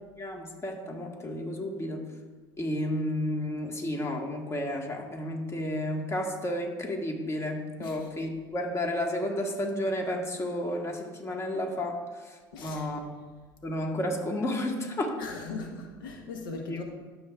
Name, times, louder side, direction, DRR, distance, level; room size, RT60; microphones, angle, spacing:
voice 1, 0.2-2.0 2.6-12.0 12.6-13.0 13.6-15.1 16.7-16.8, left 1 dB, 25° left, 2 dB, 1.6 m, -32 dB
voice 2, 12.5-12.9 13.9-14.1 15.2-16.8, left 3 dB, 85° left, 2 dB, 1.0 m, -39 dB
12.5 x 7.2 x 2.4 m, 1.3 s
hypercardioid pair, 80°, 11 cm